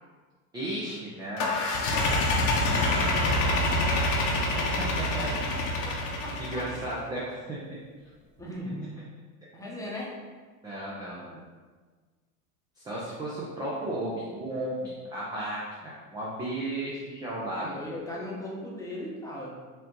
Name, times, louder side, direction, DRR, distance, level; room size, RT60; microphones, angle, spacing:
voice 1, 0.5-1.6 2.9-4.0 4.5-5.3 6.4-7.6 8.6-8.7 9.6-9.7 10.6-11.4 12.8-17.8, right 1 dB, 10° right, -7 dB, 0.3 m, -35 dB
sound 1, 1.4-6.9, left 2 dB, 40° left, 0.7 m, -26 dB
voice 2, 1.9-3.0 3.5-3.6 5.8-6.0 6.2-6.6 8.4-8.9 9.5-10.1 17.5-19.5, left 1 dB, 5° left, -4 dB, 0.8 m, -38 dB
sound 2, 2.6-6.5 6.9-7.5 7.8-8.6, right 1 dB, 85° right, 1.5 m, -46 dB
4.3 x 2.5 x 3.7 m, 1.4 s
supercardioid pair, 120°, 46 cm